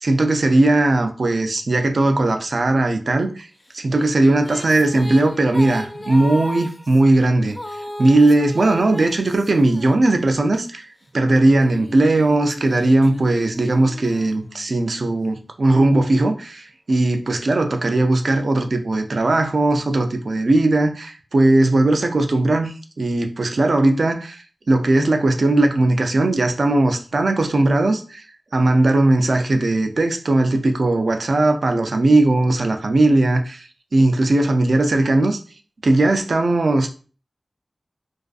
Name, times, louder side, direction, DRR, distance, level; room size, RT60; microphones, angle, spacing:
voice 1, 0.0-3.5 3.7-7.6 8.0-10.9 11.1-28.2 28.5-35.4 35.8-36.9, right 2 dB, 70° right, 0.4 m, -18 dB
sound 1, 3.6-10.6 11.3-15.0, left 1 dB, 30° left, 0.4 m, -36 dB
2.4 x 2.4 x 2.3 m
wide cardioid pair, 50°, 0 cm